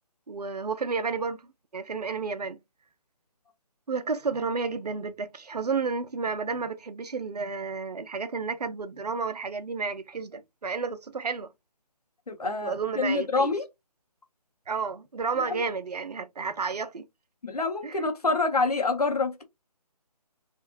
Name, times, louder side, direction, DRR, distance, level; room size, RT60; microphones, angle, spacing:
voice 1, 0.3-1.4 1.7-2.6 3.9-11.5 12.4-13.5 14.7-17.0 17.8-18.0, right 5 dB, 75° right, 0.5 m, -31 dB
voice 2, 12.3-13.6 15.3-15.6 17.4-19.4, left 3 dB, 70° left, 0.8 m, -27 dB
2.7 x 2.5 x 2.4 m
figure-of-eight pair, 150°, 20 cm